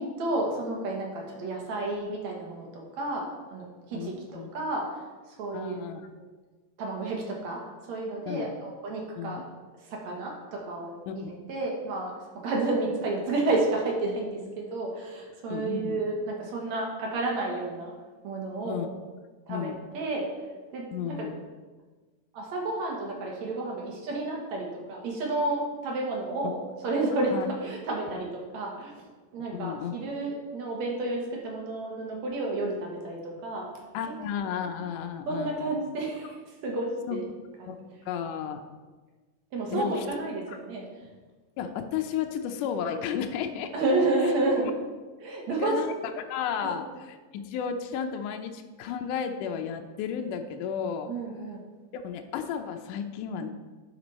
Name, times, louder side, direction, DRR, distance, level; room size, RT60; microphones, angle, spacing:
voice 1, 0.0-5.0 5.4-5.8 6.2-6.3 6.8-7.6 7.9-9.4 9.9-17.9 18.2-18.8 19.5-20.3 20.7-21.3 22.3-26.6 26.8-28.9 29.3-33.7 35.3-36.4 36.6-37.2 37.6-37.8 39.5-40.9 43.7-44.7 45.2-45.8 46.6-46.7 51.1-51.6, right 2 dB, 60° right, -1 dB, 2.3 m, -31 dB
voice 2, 3.9-4.5 5.5-6.1 8.3-8.5 9.2-9.4 11.1-11.3 15.5-16.0 18.6-18.9 19.5-19.8 20.9-21.3 27.3-27.5 29.5-29.9 33.9-35.7 37.1-37.2 37.7-37.8 38.1-38.6 39.7-40.1 40.5-40.6 41.6-43.7 45.6-45.9 46.3-51.1 52.0-53.5, left 8 dB, 80° left, 5 dB, 2.0 m, -33 dB
11.0 x 5.2 x 4.1 m, 1.3 s
omnidirectional pair, 4.0 m